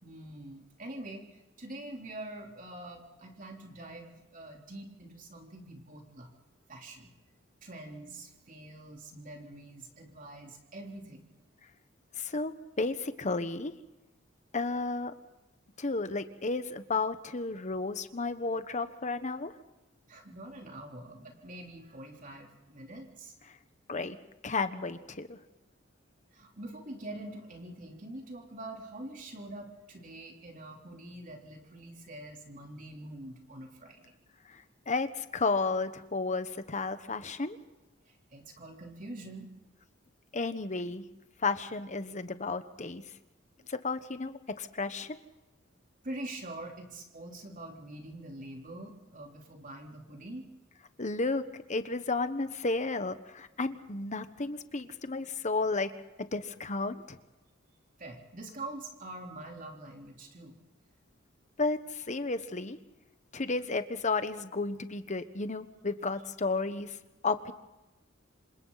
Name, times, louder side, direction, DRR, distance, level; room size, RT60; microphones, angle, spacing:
voice 1, 0.0-6.3 6.7-7.1 7.6-11.3 20.1-23.3 26.3-34.1 38.1-39.5 43.6-43.7 46.0-50.5 58.0-60.6, right 1 dB, 45° right, 1 dB, 3.7 m, -45 dB
voice 2, 12.2-13.7 14.5-15.1 15.8-19.5 23.9-24.2 24.4-25.4 34.5-37.6 40.3-41.1 41.4-43.0 43.7-45.2 51.0-51.4 51.7-55.9 56.2-57.2 61.6-62.8 63.3-67.0 67.2-67.5, left 3 dB, 35° left, 11 dB, 1.2 m, -32 dB
27.0 x 25.5 x 4.1 m, 1.0 s
head